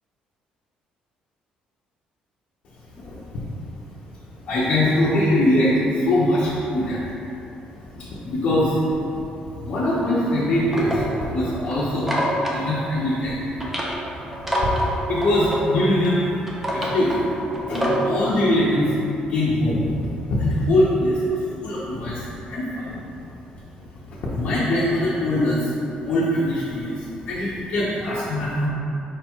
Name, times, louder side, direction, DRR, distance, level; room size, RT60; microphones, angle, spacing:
voice 1, 3.0-3.4 4.5-7.0 7.7-8.8 9.1-12.1 12.5-13.4 13.8-13.9 14.4-14.5 15.1-16.3 16.5-17.3 17.7-18.9 19.2-23.0 24.1-25.8 26.0-28.7, left 1 dB, 45° left, -8 dB, 0.6 m, -22 dB
sound 1, 10.3-18.1, equal, 10° right, 0.5 m, -28 dB
4.8 x 2.3 x 4.4 m, 2.8 s
cardioid pair, 170°, 3 cm